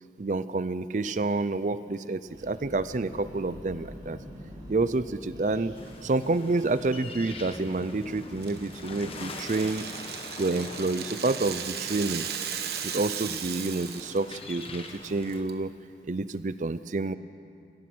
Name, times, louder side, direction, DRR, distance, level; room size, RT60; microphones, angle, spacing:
voice 1, 0.2-4.2 4.7-5.7 6.0-9.9 10.4-12.3 12.8-15.7 16.0-17.1, right 3 dB, 45° right, 14 dB, 0.5 m, -28 dB
sound 1, 2.3-9.5, equal, 20° right, 5.0 m, -45 dB
sound 2, 5.8-15.4, left 3 dB, 30° left, 1.4 m, -44 dB
Rattle (instrument), 8.4-14.2 14.5-14.7 15.0-15.5, right 9 dB, 60° right, 1.2 m, -36 dB
27.0 x 17.5 x 6.1 m, 2.6 s
head